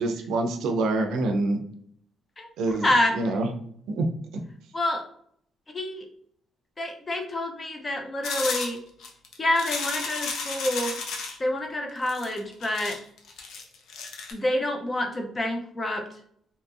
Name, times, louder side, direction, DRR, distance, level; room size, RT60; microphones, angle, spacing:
voice 1, 0.0-1.6 2.6-2.9 3.1-3.5 3.9-4.1, right 2 dB, 85° right, 4 dB, 0.4 m, -25 dB
voice 2, 2.8-3.1 4.7-5.0 5.7-6.1 6.8-8.8 9.4-11.0 11.4-13.0 14.3-16.0, left 1 dB, 30° left, 4 dB, 0.6 m, -27 dB
sound 1, 8.2-11.4 12.1-14.3, left 4 dB, 80° left, 0.5 m, -33 dB
2.8 x 2.6 x 2.3 m, 0.64 s
cardioid pair, 90°, 0 cm